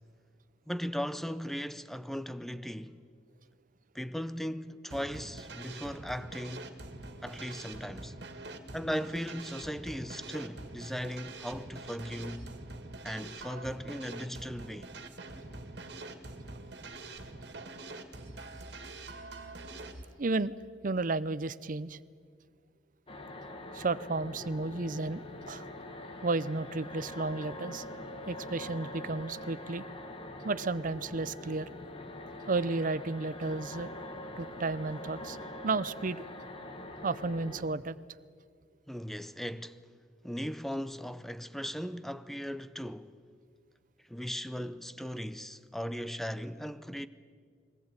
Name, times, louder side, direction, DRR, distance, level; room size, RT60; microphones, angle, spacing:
voice 1, 0.7-3.0 3.9-6.7 7.2-8.1 8.7-12.6 13.0-14.9 38.9-39.8 40.2-43.1 44.1-47.1, equal, ahead, 0.6 m, -38 dB
sound 1, 4.9-20.0, right 2 dB, 70° right, 2.1 m, -45 dB
voice 2, 20.2-20.5 20.8-22.0 23.7-25.7 26.2-27.8 28.3-29.8 30.4-31.7 32.5-33.9 34.4-35.4 35.6-36.2 37.0-37.9, right 3 dB, 50° right, 0.6 m, -32 dB
sound 2, 23.1-37.6, left 1 dB, 30° left, 1.6 m, -44 dB
22.0 x 18.5 x 8.9 m
head